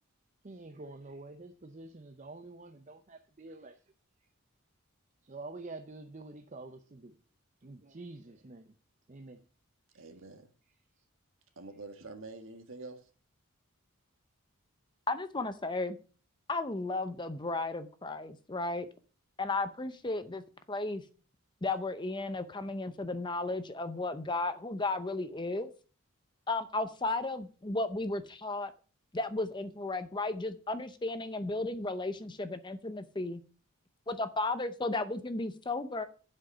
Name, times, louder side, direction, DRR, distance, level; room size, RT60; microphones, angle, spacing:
voice 1, 0.4-3.8 5.2-7.2 7.6-8.7 9.1-9.5 9.9-10.1 11.0-11.1, right 2 dB, 35° right, 0.6 m, -47 dB
voice 2, 9.9-10.5 11.6-13.1, right 3 dB, 65° right, 1.5 m, -46 dB
voice 3, 15.1-16.0 16.5-18.9 19.4-20.4 20.7-21.0 21.6-25.7 26.5-28.7 29.1-33.4 34.1-36.1, left 2 dB, 20° left, 0.6 m, -34 dB
7.8 x 6.3 x 6.7 m
head